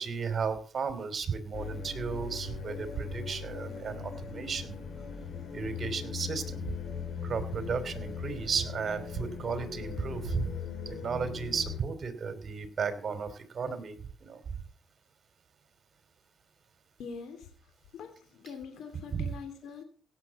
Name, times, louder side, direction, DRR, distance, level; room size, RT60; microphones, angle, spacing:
voice 1, 0.0-4.8 5.5-6.6 7.2-10.5 10.8-14.4 19.1-19.3, right 6 dB, 45° right, 9 dB, 3.1 m, -34 dB
sound 1, 1.5-11.8, left 6 dB, 60° left, 3.9 m, -39 dB
voice 2, 17.0-17.5 17.9-19.8, left 5 dB, 75° left, 6 dB, 2.8 m, -43 dB
17.0 x 7.5 x 7.1 m, 0.42 s
cardioid pair, 90°, 0 cm